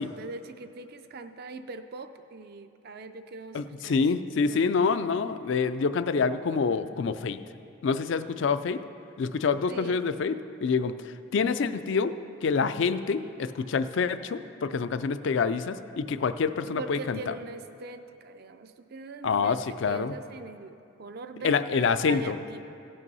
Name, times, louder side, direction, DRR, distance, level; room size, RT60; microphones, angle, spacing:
voice 1, 0.0-4.0 4.4-4.8 9.7-10.0 16.8-22.6, right 3 dB, 45° right, 8 dB, 0.4 m, -42 dB
voice 2, 3.5-7.4 7.8-8.8 9.2-10.3 10.6-10.9 11.3-12.1 12.4-17.3 19.2-20.1 21.4-22.4, left 5 dB, 60° left, 12 dB, 0.4 m, -26 dB
16.5 x 5.5 x 5.4 m, 2.6 s
head